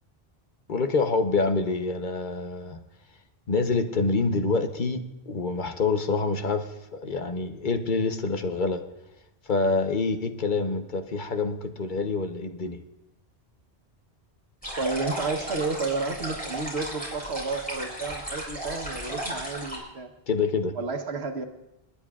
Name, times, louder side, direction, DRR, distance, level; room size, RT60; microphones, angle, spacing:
voice 1, 0.7-2.8 3.5-8.8 9.5-12.8 20.3-20.7, left 3 dB, 50° left, 7 dB, 1.0 m, -26 dB
sound 1, 14.6-19.8, right 1 dB, 10° left, 4.1 m, -35 dB
voice 2, 14.8-20.1 20.7-21.5, right 3 dB, 80° right, 5 dB, 1.5 m, -31 dB
29.0 x 10.0 x 2.4 m, 0.92 s
omnidirectional pair, 1.1 m